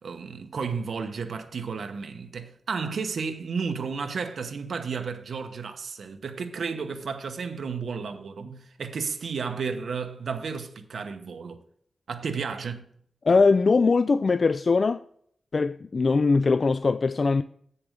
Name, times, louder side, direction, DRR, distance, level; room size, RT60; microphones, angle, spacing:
voice 1, 0.0-11.6 12.1-12.8, right 5 dB, 85° right, 0.9 m, -32 dB
voice 2, 13.2-15.0 15.5-17.4, left 4 dB, 50° left, 0.3 m, -21 dB
8.4 x 6.9 x 5.0 m
wide cardioid pair, 95°, 0 cm